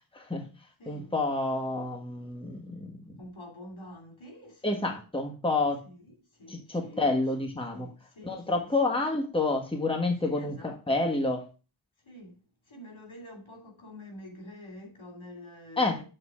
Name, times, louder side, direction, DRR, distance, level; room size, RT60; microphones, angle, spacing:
voice 1, 0.1-0.5 0.9-3.2 4.6-5.8 6.5-7.9 8.2-11.4 15.8-16.0, left 2 dB, 10° left, 1.5 m, -29 dB
voice 2, 0.8-1.1 3.2-5.0 5.8-6.1 6.3-7.2 7.7-8.7 10.2-11.0 12.0-16.0, left 1 dB, 75° left, 2.8 m, -47 dB
7.8 x 4.0 x 4.8 m
wide cardioid pair, 60°, 47 cm